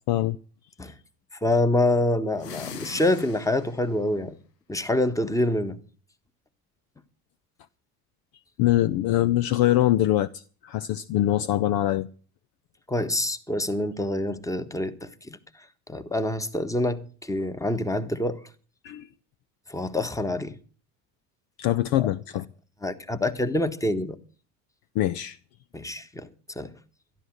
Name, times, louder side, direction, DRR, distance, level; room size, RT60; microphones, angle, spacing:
voice 1, 0.1-0.4 8.6-12.1 18.8-19.1 21.6-22.5 24.9-25.4, left 14 dB, 50° left, 0.6 m, -23 dB
voice 2, 1.4-4.4 4.7-5.8 12.9-15.4 15.9-18.4 19.7-20.5 22.0-22.1 22.8-24.2 25.7-26.3 26.5-26.7, left 1 dB, 5° left, 1.3 m, -26 dB
sound 1, 2.3-3.9, left 8 dB, 80° left, 1.3 m, -40 dB
13.0 x 11.5 x 6.4 m
hypercardioid pair, 70°, 47 cm